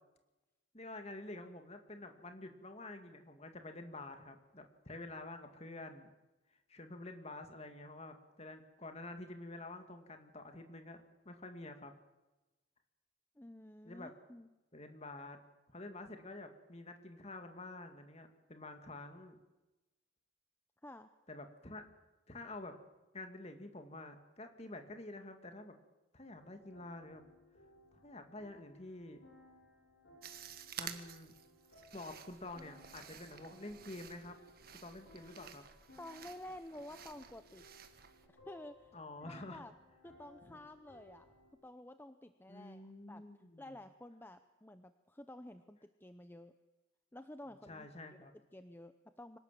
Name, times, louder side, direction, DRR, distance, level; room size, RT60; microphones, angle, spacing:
voice 1, 0.7-6.1 6.7-11.9 13.8-14.1 14.7-15.4 15.7-19.4 21.3-21.9 22.3-22.8 23.1-25.8 26.1-27.2 27.9-29.2 30.8-31.4 31.9-34.4 34.8-35.7 38.9-39.6 42.5-43.8 47.7-48.3, left 2 dB, 35° left, 6 dB, 2.3 m, -48 dB
voice 2, 13.4-14.5 20.8-21.1 36.0-37.6 38.3-38.9 39.3-39.7 40.0-41.3 41.6-43.2 43.6-46.5 47.1-47.9 48.3-49.4, left 1 dB, 10° left, 10 dB, 0.7 m, -51 dB
sound 1, 26.3-41.5, left 1 dB, 65° left, 7.2 m, -62 dB
sound 2, 30.2-38.3, right 9 dB, 50° right, 1.6 m, -52 dB
25.0 x 18.5 x 7.6 m, 1.0 s
head